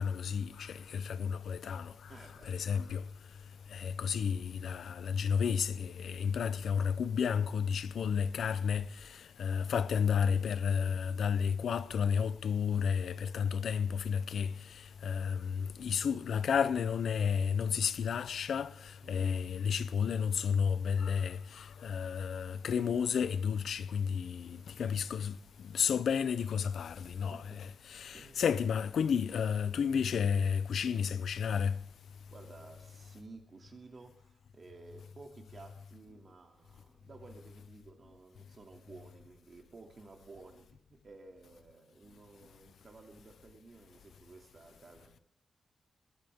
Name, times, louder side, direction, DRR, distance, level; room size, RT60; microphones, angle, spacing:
voice 1, 0.0-1.9 2.5-3.0 3.7-9.1 9.4-14.5 15.0-25.3 25.7-31.7, left 7 dB, 80° left, 0.6 m, -32 dB
voice 2, 2.1-2.9 19.0-19.3 24.4-24.8 27.1-27.6 28.1-28.4 32.3-45.2, right 3 dB, 40° right, 2.6 m, -54 dB
19.5 x 19.0 x 3.6 m
wide cardioid pair, 145°, 0 cm